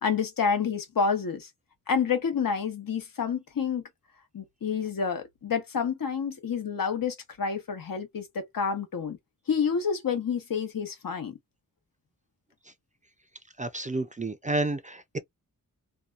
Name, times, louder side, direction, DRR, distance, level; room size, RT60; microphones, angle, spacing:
voice 1, 0.0-1.5 1.9-3.8 4.3-9.2 9.5-11.4, left 6 dB, 75° left, 1.0 m, -29 dB
voice 2, 13.6-15.2, right 2 dB, 25° right, 0.3 m, -30 dB
2.8 x 2.2 x 2.3 m
wide cardioid pair, 80°, 35 cm